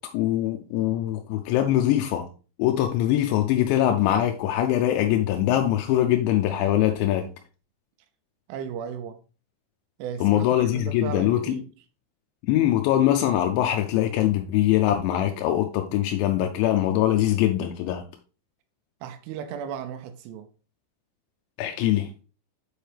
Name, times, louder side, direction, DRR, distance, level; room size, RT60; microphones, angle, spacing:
voice 1, 0.1-2.3 2.6-7.3 10.2-11.6 12.4-18.0 21.6-22.1, left 12 dB, 85° left, 2.7 m, -22 dB
voice 2, 8.5-9.2 10.0-11.7 19.0-20.5, right 8 dB, 85° right, 3.1 m, -35 dB
7.3 x 4.7 x 3.3 m
omnidirectional pair, 5.5 m